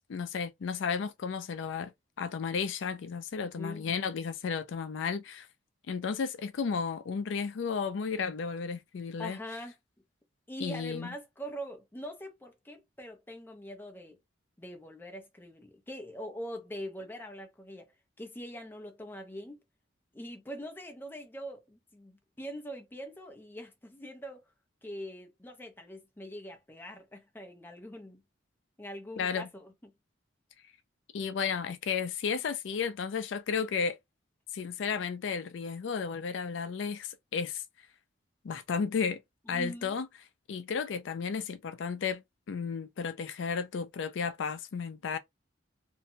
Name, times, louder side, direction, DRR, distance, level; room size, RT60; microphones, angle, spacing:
voice 1, 0.1-1.9 2.2-5.5 5.9-9.4 10.6-11.1 29.2-29.5 31.1-34.0 34.5-37.6 38.4-39.2 39.5-40.1 40.5-42.2 42.5-45.2, left 6 dB, 70° left, 0.4 m, -33 dB
voice 2, 3.4-3.9 9.2-9.7 10.5-14.2 14.6-17.9 18.2-19.6 20.1-24.5 24.8-28.2 28.8-29.9 39.5-40.0, equal, 10° left, 0.5 m, -43 dB
2.6 x 2.2 x 2.7 m
head